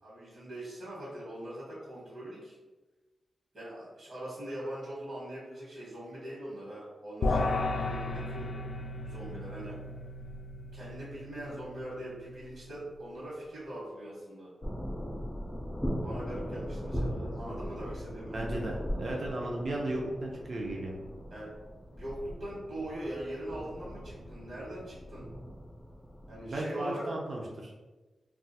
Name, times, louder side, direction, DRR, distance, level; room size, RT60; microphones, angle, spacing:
voice 1, 0.0-2.6 3.5-8.5 9.0-9.8 10.7-14.5 15.9-18.4 21.3-21.5 21.9-25.2 26.3-27.0, right 1 dB, 65° right, -7 dB, 1.2 m, -42 dB
sound 1, 7.2-12.7, left 2 dB, 70° left, 0.3 m, -35 dB
sound 2, 14.6-26.6, equal, 5° left, 0.5 m, -39 dB
voice 2, 18.3-20.9 26.5-27.7, right 1 dB, 50° right, -2 dB, 0.5 m, -35 dB
2.4 x 2.3 x 4.0 m, 1.2 s
wide cardioid pair, 130°, 0 cm